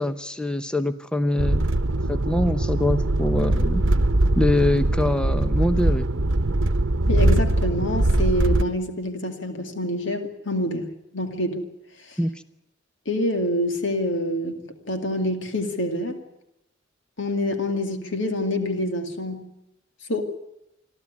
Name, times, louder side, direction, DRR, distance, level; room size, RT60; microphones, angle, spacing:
voice 1, 0.0-1.7 2.1-3.8 4.4-6.1 12.2-12.3, left 1 dB, 5° left, 11 dB, 0.8 m, -24 dB
sound 1, 1.4-8.6, right 1 dB, 80° right, 1.0 m, -21 dB
voice 2, 7.1-10.9 11.1-11.7 12.1-12.2 13.1-16.2 17.2-19.5 20.1-20.2, left 1 dB, 70° left, 6 dB, 2.4 m, -26 dB
26.5 x 12.5 x 9.7 m, 0.88 s
head